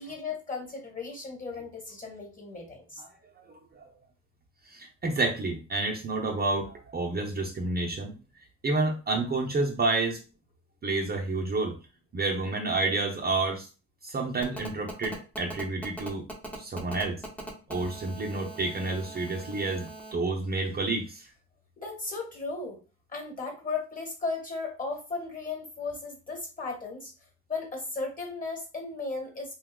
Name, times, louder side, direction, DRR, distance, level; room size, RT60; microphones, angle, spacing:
voice 1, 0.0-3.0 21.8-22.8 23.1-27.1 27.5-29.5, left 3 dB, 25° left, 2 dB, 1.4 m, -35 dB
voice 2, 3.5-3.8 4.7-8.1 8.6-10.2 10.8-11.7 12.1-13.7 14.0-16.2 16.6-17.2 17.7-21.3, right 3 dB, 30° right, -1 dB, 0.7 m, -29 dB
Telephone, 14.4-20.1, right 1 dB, 5° left, 0.7 m, -41 dB
2.8 x 2.3 x 3.5 m, 0.34 s
cardioid pair, 90°, 30 cm